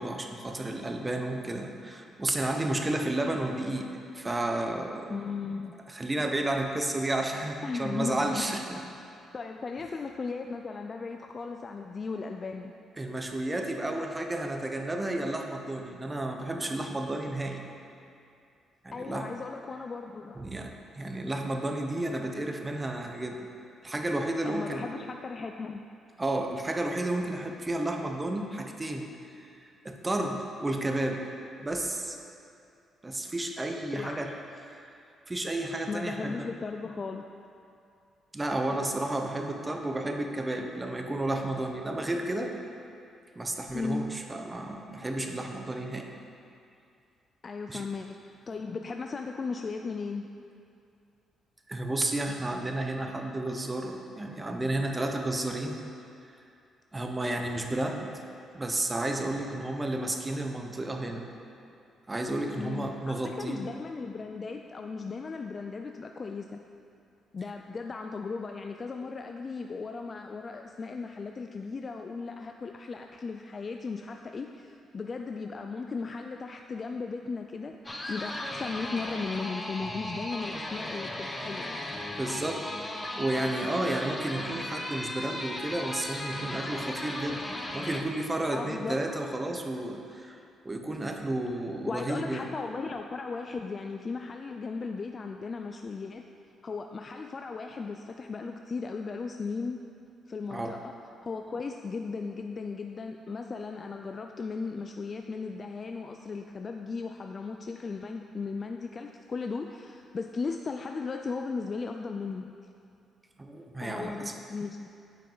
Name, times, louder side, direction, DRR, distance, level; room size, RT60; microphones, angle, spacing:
voice 1, 0.0-5.2 5.9-8.8 13.0-17.7 18.8-19.3 20.4-23.5 23.8-24.9 26.2-31.2 31.6-32.2 33.0-34.3 34.7-34.8 35.3-36.5 38.3-42.5 43.3-46.1 47.7-47.9 51.7-55.8 56.9-58.1 58.5-61.2 62.1-63.7 79.8-79.9 82.2-87.4 87.7-90.4 90.6-92.5 100.5-100.8 113.4-114.3, right 1 dB, 20° right, 4 dB, 0.7 m, -32 dB
voice 2, 5.1-5.8 7.6-8.5 9.3-12.7 18.9-20.4 24.4-25.9 33.9-34.3 35.9-37.3 43.7-44.1 47.4-48.2 48.5-50.3 62.6-66.6 67.3-77.8 78.1-81.8 88.5-89.3 91.9-96.2 96.6-99.8 100.3-100.9 101.2-112.5 113.8-114.9, left 4 dB, 40° left, 4 dB, 0.3 m, -36 dB
sound 1, 77.9-88.0, left 1 dB, 15° left, 0.7 m, -37 dB
8.9 x 5.4 x 3.9 m, 2.5 s
cardioid pair, 90°, 0 cm